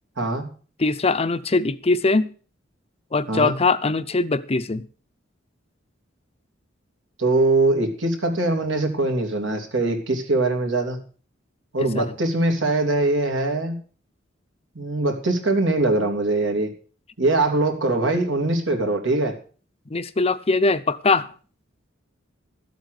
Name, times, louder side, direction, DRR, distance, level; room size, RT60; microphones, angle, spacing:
voice 1, 0.2-0.5 3.3-3.5 7.2-11.0 11.7-13.8 14.7-16.7 17.2-19.4, right 2 dB, 75° right, 4 dB, 2.9 m, -22 dB
voice 2, 0.8-2.3 3.1-4.8 11.9-12.1 19.9-21.3, left 3 dB, 30° left, 14 dB, 0.6 m, -21 dB
13.0 x 8.1 x 6.5 m, 0.39 s
head